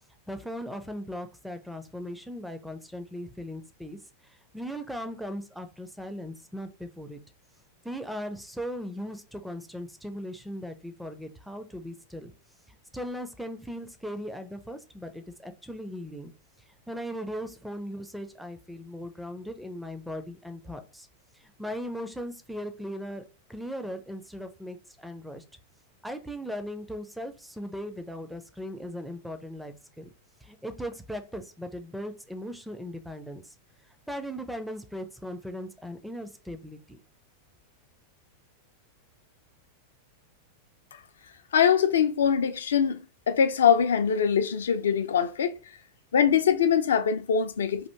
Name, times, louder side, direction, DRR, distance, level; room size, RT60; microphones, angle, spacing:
voice 1, 0.3-4.0 4.2-7.2 7.8-12.3 12.7-16.3 16.9-21.1 21.4-25.4 26.0-30.1 30.4-33.5 34.1-37.0, equal, ahead, 0.4 m, -38 dB
voice 2, 41.5-43.0 43.3-45.5 46.1-47.9, left 7 dB, 65° left, 0.3 m, -23 dB
2.7 x 2.5 x 3.3 m
figure-of-eight pair, 90°, 0 cm